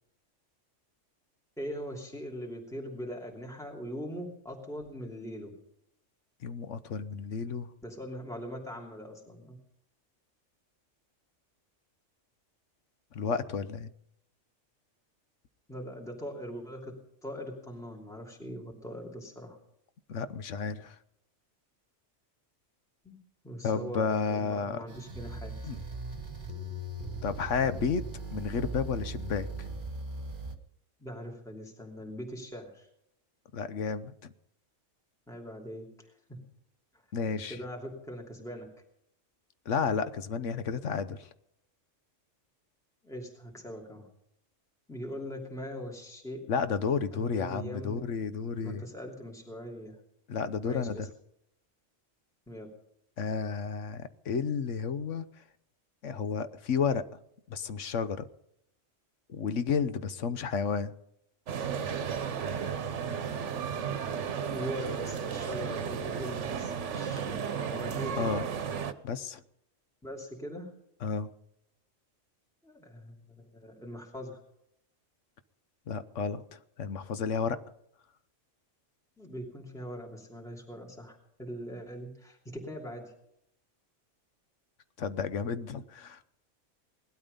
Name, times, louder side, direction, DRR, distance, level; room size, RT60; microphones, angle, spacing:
voice 1, 1.6-5.5 7.8-9.6 15.7-16.9 17.2-19.6 23.0-23.2 23.4-25.5 31.0-32.9 35.3-36.4 37.5-38.7 43.0-44.1 44.9-46.4 47.1-48.0 48.6-50.0 50.6-51.1 52.5-52.7 64.4-68.4 70.0-70.7 72.6-74.4 79.2-83.0, equal, ahead, -1 dB, 2.9 m, -41 dB
voice 2, 6.4-7.7 13.1-13.9 20.1-21.0 23.6-24.8 25.6-25.8 27.2-29.7 33.5-34.3 37.1-37.6 39.7-41.3 46.5-48.8 50.3-51.1 53.2-55.2 56.0-57.1 57.5-58.2 59.3-60.9 68.2-68.4 69.0-69.4 71.0-71.3 75.9-77.6 85.0-86.2, left 6 dB, 75° left, 12 dB, 1.2 m, -32 dB
sound 1, 24.9-30.6, right 2 dB, 40° right, 1.6 m, -39 dB
sound 2, 61.5-68.9, right 7 dB, 70° right, 1.2 m, -34 dB
19.0 x 12.5 x 5.3 m, 0.75 s
omnidirectional pair, 1.3 m